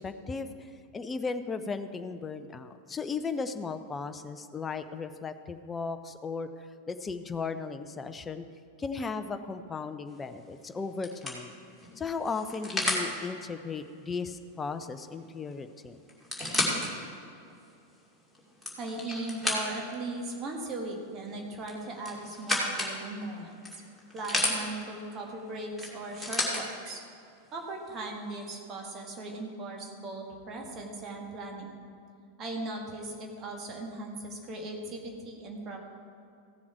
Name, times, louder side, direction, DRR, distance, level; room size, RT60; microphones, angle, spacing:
voice 1, 0.0-8.4 8.8-11.5 12.0-16.0, left 4 dB, 15° left, 9 dB, 0.6 m, -36 dB
sound 1, 10.1-10.4 11.0-13.1 15.1-15.2 15.5-15.6 16.1-16.9 17.5-17.6 18.4-20.0 21.6-23.0 23.6-24.6 25.8-26.6 27.6-27.7, left 1 dB, ahead, 2.3 m, -31 dB
voice 2, 18.8-23.6 24.1-27.0 27.5-31.8 32.4-35.8, right 2 dB, 30° right, 1 dB, 1.8 m, -38 dB
16.0 x 7.2 x 4.6 m, 2.5 s
figure-of-eight pair, 90°, 0 cm